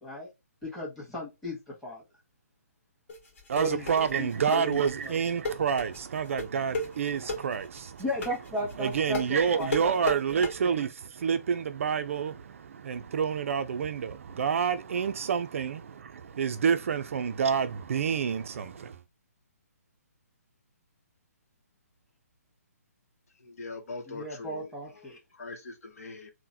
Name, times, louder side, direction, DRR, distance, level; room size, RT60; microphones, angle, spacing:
voice 1, 0.6-2.0 3.5-3.9 4.2-5.1 8.0-10.0 24.1-25.2, left 1 dB, 5° left, 1.5 m, -35 dB
sound 1, 3.1-10.5, left 1 dB, 50° left, 1.4 m, -34 dB
voice 2, 3.5-8.0 8.8-19.0, right 7 dB, 55° right, 0.4 m, -28 dB
voice 3, 23.4-24.7 25.4-26.3, left 3 dB, 65° left, 0.9 m, -41 dB
3.8 x 2.1 x 2.7 m
hypercardioid pair, 145°, 9 cm